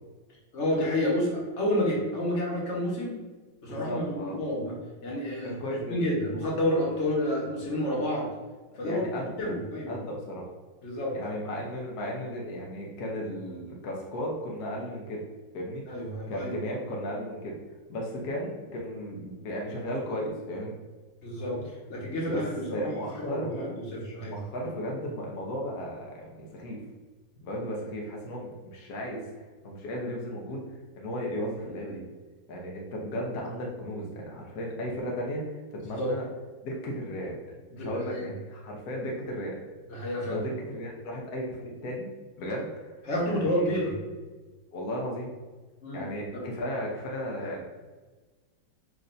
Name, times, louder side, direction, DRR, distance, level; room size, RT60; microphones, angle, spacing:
voice 1, 0.5-3.1 3.6-4.7 5.0-5.6 5.9-8.3 8.8-9.9 10.8-11.1 15.9-16.6 21.2-21.6 21.9-24.4 36.0-36.1 37.7-38.3 39.9-40.4 43.1-43.9 45.8-46.0 46.3-46.4, left 1 dB, 40° left, -4 dB, 1.3 m, -29 dB
voice 2, 3.7-4.4 5.4-6.0 8.7-9.5 9.9-10.5 11.1-15.2 15.5-15.8 16.3-17.6 17.9-20.8 22.3-22.4 22.7-23.8 24.2-26.8 27.4-29.3 29.6-30.6 31.0-32.0 32.5-36.3 36.6-39.6 40.3-42.1 42.4-42.9 43.2-43.9 44.7-45.3 45.9-47.7, equal, 60° left, -2 dB, 1.1 m, -35 dB
7.5 x 2.6 x 2.6 m, 1.3 s
omnidirectional pair, 2.3 m